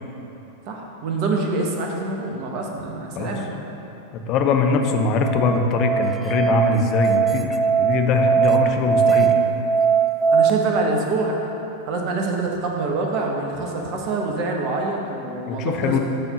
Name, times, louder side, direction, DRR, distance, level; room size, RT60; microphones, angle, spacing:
voice 1, 0.6-3.5 10.3-11.5 11.8-16.0, right 3 dB, 40° right, 0 dB, 1.2 m, -25 dB
voice 2, 4.1-9.3 15.5-16.0, left 4 dB, 40° left, 4 dB, 0.7 m, -22 dB
Musical instrument, 4.8-10.5, right 7 dB, 10° right, 0.4 m, -20 dB
8.0 x 4.5 x 6.7 m, 3.0 s
figure-of-eight pair, 90°, 0 cm